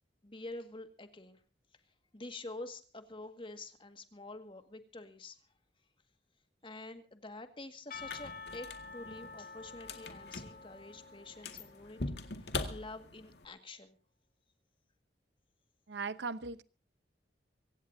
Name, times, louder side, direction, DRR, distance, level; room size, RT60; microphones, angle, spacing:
voice 1, 0.2-1.4 2.1-5.4 6.6-14.0, left 2 dB, 30° left, 1.8 m, -47 dB
sound 1, 7.9-13.5, left 3 dB, 70° left, 2.0 m, -43 dB
Percussion / Church bell, 7.9-12.9, left 4 dB, 50° left, 2.2 m, -50 dB
voice 2, 15.9-16.6, right 4 dB, 85° right, 0.9 m, -38 dB
24.5 x 16.5 x 2.7 m
head